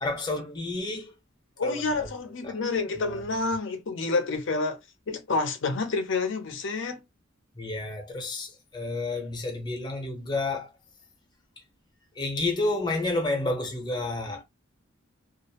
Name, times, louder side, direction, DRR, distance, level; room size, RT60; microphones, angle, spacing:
voice 1, 0.0-1.1 1.6-2.1 2.4-2.6 3.0-3.5 7.6-10.7 12.2-14.4, left 2 dB, 20° left, 0.7 m, -30 dB
voice 2, 1.6-4.8 5.1-7.0, left 3 dB, 65° left, 0.6 m, -28 dB
2.4 x 2.0 x 2.7 m
head